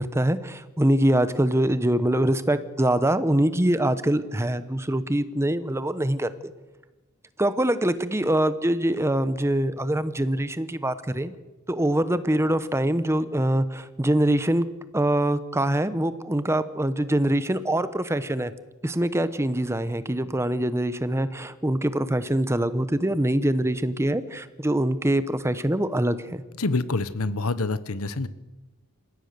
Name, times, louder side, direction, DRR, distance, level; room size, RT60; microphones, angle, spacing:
voice 1, 0.0-6.3 7.4-11.3 11.7-14.7 14.9-18.5 18.8-26.4, right 1 dB, 10° right, 13 dB, 0.9 m, -24 dB
voice 2, 26.6-28.3, left 3 dB, 75° left, 14 dB, 1.1 m, -26 dB
27.5 x 15.5 x 6.8 m, 1.1 s
head